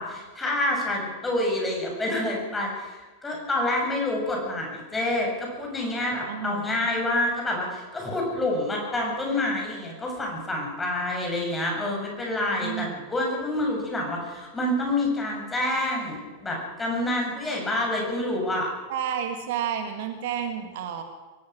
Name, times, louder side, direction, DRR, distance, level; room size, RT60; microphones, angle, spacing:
voice 1, 0.0-18.7, left 1 dB, 15° left, -1 dB, 7.7 m, -27 dB
voice 2, 6.3-6.9 12.6-13.0 18.9-21.0, right 8 dB, 55° right, 7 dB, 2.0 m, -31 dB
23.5 x 18.0 x 6.2 m, 1.3 s
figure-of-eight pair, 90°, 0 cm